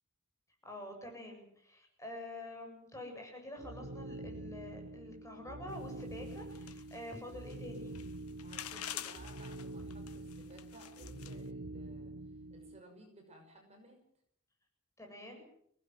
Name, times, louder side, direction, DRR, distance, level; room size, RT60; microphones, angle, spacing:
voice 1, 0.6-8.0 15.0-15.4, left 1 dB, 15° left, 2 dB, 7.6 m, -47 dB
sound 1, 3.6-12.8, right 2 dB, 85° right, 1.0 m, -46 dB
sound 2, 5.7-11.5, left 11 dB, 75° left, 1.2 m, -49 dB
voice 2, 8.4-14.0, right 1 dB, 30° right, 3 dB, 5.9 m, -57 dB
24.5 x 18.5 x 7.7 m, 0.66 s
head